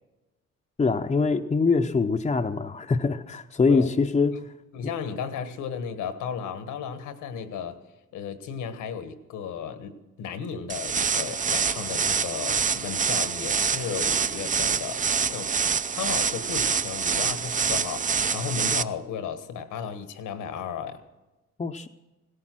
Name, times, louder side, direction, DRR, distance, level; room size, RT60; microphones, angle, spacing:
voice 1, 0.8-4.5 21.6-21.9, left 4 dB, 20° left, 3 dB, 0.6 m, -23 dB
voice 2, 4.7-7.8 8.1-15.5 15.9-21.0, left 7 dB, 85° left, 10 dB, 1.5 m, -34 dB
sound 1, 10.7-18.8, right 6 dB, 25° right, 0.5 m, -26 dB
17.0 x 13.0 x 6.1 m, 1.1 s
cardioid pair, 90°, 30 cm